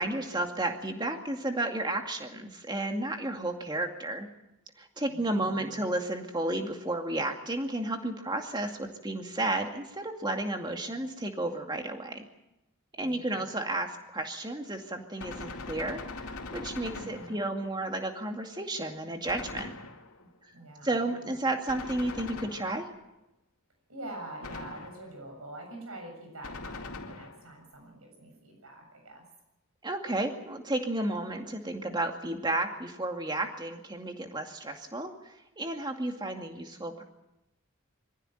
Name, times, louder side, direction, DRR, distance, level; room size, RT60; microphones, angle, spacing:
voice 1, 0.0-4.3 4.8-12.2 13.0-19.7 20.8-22.9 29.8-35.1 35.6-37.0, right 2 dB, 20° right, 3 dB, 2.3 m, -32 dB
voice 2, 5.1-5.9 13.0-13.5 16.9-17.4 20.2-21.5 23.9-29.3, right 1 dB, 75° right, 3 dB, 7.3 m, -46 dB
Gunshot gunfire, 15.2-17.7 19.3-20.3 21.7-23.1 24.4-25.2 26.4-27.6, left 3 dB, 90° left, 2.7 m, -42 dB
24.0 x 15.0 x 9.2 m, 0.90 s
head